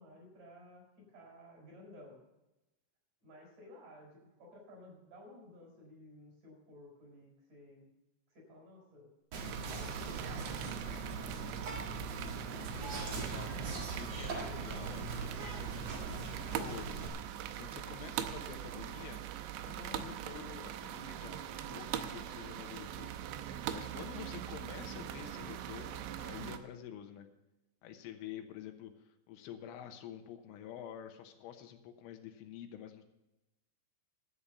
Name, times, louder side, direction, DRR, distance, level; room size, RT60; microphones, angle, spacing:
voice 1, 0.0-2.2 3.2-7.9 8.3-9.1 9.5-11.5, left 1 dB, 40° right, -1 dB, 6.3 m, -55 dB
Whispering, 9.3-17.1, right 4 dB, 60° right, 1.7 m, -40 dB
sound 1, 9.3-26.6, right 10 dB, 75° right, 2.8 m, -42 dB
voice 2, 12.9-13.5 14.0-15.8 16.6-16.9 17.6-19.2 19.6-23.1 23.7-27.3 27.8-33.0, left 10 dB, 85° left, 6 dB, 3.5 m, -48 dB
13.0 x 8.7 x 6.8 m, 0.96 s
omnidirectional pair, 5.6 m